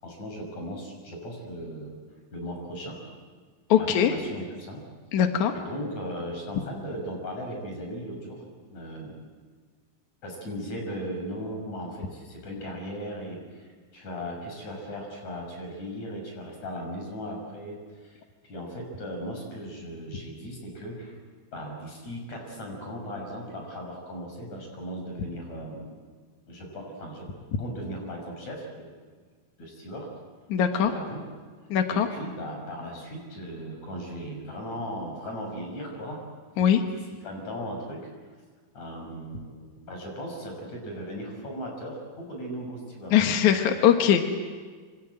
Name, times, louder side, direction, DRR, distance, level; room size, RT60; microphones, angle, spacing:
voice 1, 0.0-1.9 2.3-3.0 3.7-4.8 5.5-9.1 10.2-17.8 18.0-18.2 18.5-21.2 21.5-25.9 26.5-27.3 27.6-28.9 29.6-30.1 30.8-31.2 31.9-36.2 36.9-38.1 38.7-43.2, equal, 35° left, 1 dB, 7.3 m, -37 dB
voice 2, 3.7-4.1 5.1-5.5 30.5-30.9 31.7-32.1 36.6-36.8 43.1-44.3, left 9 dB, 75° left, 5 dB, 1.8 m, -21 dB
26.5 x 26.5 x 7.7 m, 1.5 s
omnidirectional pair, 5.6 m